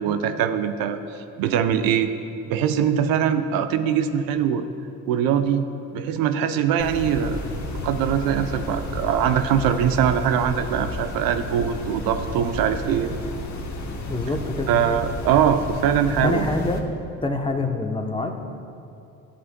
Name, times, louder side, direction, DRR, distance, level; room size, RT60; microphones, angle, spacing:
voice 1, 0.0-2.1 2.5-4.7 5.1-5.7 5.9-7.4 7.8-13.1 14.7-16.5, right 8 dB, 70° right, 9 dB, 0.6 m, -22 dB
sound 1, 6.8-16.8, left 1 dB, 50° left, 1.0 m, -32 dB
voice 2, 14.1-14.7 16.2-16.8 17.2-18.4, left 2 dB, 15° left, 4 dB, 0.8 m, -26 dB
12.5 x 8.2 x 2.2 m, 2.6 s
hypercardioid pair, 60°, 36 cm